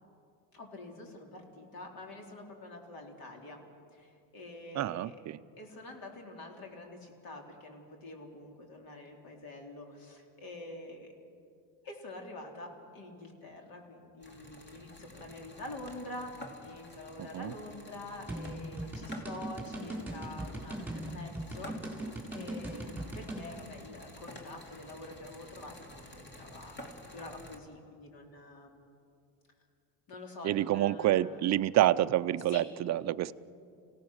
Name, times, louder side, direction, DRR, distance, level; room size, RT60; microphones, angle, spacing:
voice 1, 0.5-3.6 3.9-5.2 5.6-11.1 11.8-26.8 27.1-28.8 30.1-31.4 32.5-32.7, left 2 dB, 50° left, 2 dB, 4.2 m, -46 dB
voice 2, 4.7-5.4 17.2-17.5 30.4-33.3, right 13 dB, 35° right, 13 dB, 0.6 m, -28 dB
sound 1, 14.2-27.6, left 1 dB, 25° left, 2.9 m, -51 dB
sound 2, 18.3-23.4, right 1 dB, 5° right, 4.5 m, -39 dB
27.5 x 17.5 x 6.5 m, 2.4 s
supercardioid pair, 115°, 46 cm